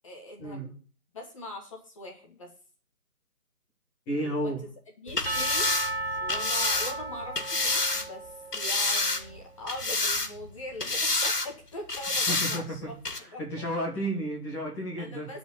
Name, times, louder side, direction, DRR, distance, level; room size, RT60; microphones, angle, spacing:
voice 1, 0.0-0.7 1.1-2.5 4.2-4.5 5.0-5.7 6.2-12.8 13.2-13.4 15.0-15.4, left 1 dB, 20° left, 0 dB, 2.0 m, -42 dB
voice 2, 4.1-4.6 12.3-12.9 13.1-15.3, equal, 5° left, -4 dB, 1.7 m, -32 dB
sound 1, 5.1-8.1 8.5-9.4 9.7-10.5 10.8-11.5 11.9-12.6 13.0-13.2, left 3 dB, 90° left, 2.5 m, -28 dB
Percussion / Church bell, 5.3-9.2, right 2 dB, 45° right, 0.6 m, -35 dB
12.0 x 5.3 x 8.6 m, 0.40 s
figure-of-eight pair, 160°, 46 cm